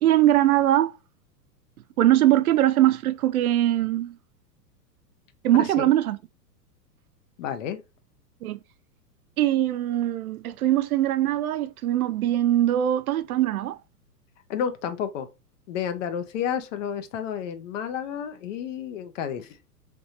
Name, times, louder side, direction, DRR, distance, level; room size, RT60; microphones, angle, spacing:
voice 1, 0.0-0.9 2.0-4.2 5.4-6.2 8.4-8.6 9.4-13.8, right 13 dB, 60° right, 0.5 m, -21 dB
voice 2, 5.6-5.9 7.4-7.8 14.5-15.3 15.7-19.6, left 8 dB, 50° left, 0.8 m, -31 dB
3.4 x 3.1 x 2.7 m
hypercardioid pair, 110°, 49 cm